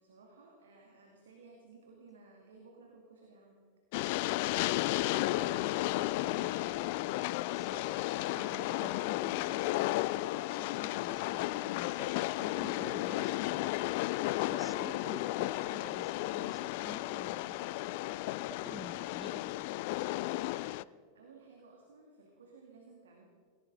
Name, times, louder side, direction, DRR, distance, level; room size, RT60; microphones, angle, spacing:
voice 1, 0.0-3.7 20.1-23.2, right 3 dB, 65° right, 1 dB, 2.4 m, -57 dB
Train, 3.9-20.8, left 18 dB, 50° left, 0.3 m, -33 dB
voice 2, 5.0-7.9 8.3-13.8 14.5-17.9 18.5-19.7, equal, ahead, 9 dB, 1.0 m, -50 dB
19.0 x 18.5 x 3.9 m, 2.1 s
figure-of-eight pair, 90°, 0 cm